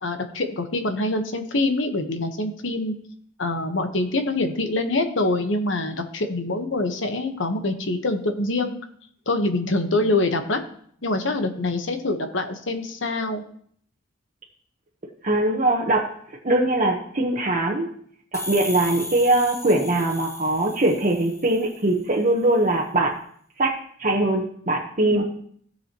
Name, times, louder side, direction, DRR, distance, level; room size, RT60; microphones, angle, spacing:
voice 1, 0.0-2.9 3.4-8.8 9.3-10.6 11.0-13.4 25.0-25.2, left 2 dB, 70° left, 6 dB, 1.2 m, -25 dB
voice 2, 15.2-16.1 16.4-17.9 18.3-23.1 23.6-25.2, right 2 dB, 40° right, -1 dB, 1.1 m, -21 dB
sound 1, 18.3-21.9, left 1 dB, 15° left, 1.2 m, -36 dB
16.0 x 7.1 x 3.0 m, 0.62 s
head